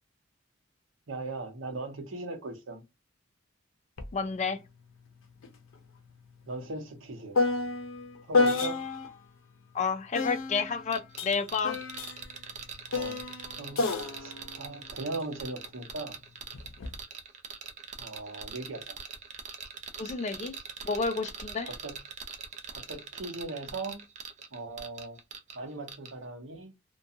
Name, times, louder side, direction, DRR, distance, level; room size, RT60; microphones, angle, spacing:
voice 1, 1.1-2.8 6.5-7.3 8.2-8.8 12.9-13.2 13.6-13.9 14.2-16.2 18.0-19.0 21.6-22.0 22.7-24.0 24.5-25.2 25.5-26.7, right 3 dB, 70° right, 0.8 m, -39 dB
sound 1, 4.0-4.1 4.5-9.2 10.1-15.7 16.5-17.0, left 3 dB, 80° left, 0.5 m, -31 dB
voice 2, 4.1-4.6 9.7-11.8 20.0-20.6 20.8-21.7, left 5 dB, 35° left, 0.3 m, -30 dB
sound 2, 10.9-25.6 25.9-26.1, right 6 dB, 40° right, 0.5 m, -43 dB
2.4 x 2.2 x 2.6 m
head